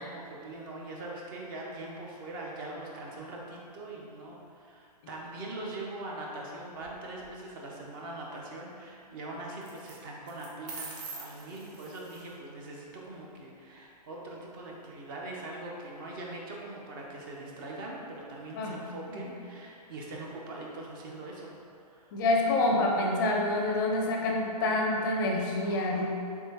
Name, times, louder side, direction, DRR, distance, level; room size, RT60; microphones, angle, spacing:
voice 1, 0.0-21.6 21.9-22.1 25.6-26.1, right 2 dB, 30° right, -2 dB, 0.5 m, -42 dB
sound 1, 6.7-7.3 9.6-9.9 10.3-12.3, right 4 dB, 70° right, 0.8 m, -44 dB
voice 2, 22.1-26.1, left 2 dB, 30° left, 0 dB, 0.4 m, -27 dB
3.4 x 3.3 x 2.8 m, 2.5 s
hypercardioid pair, 145°, 21 cm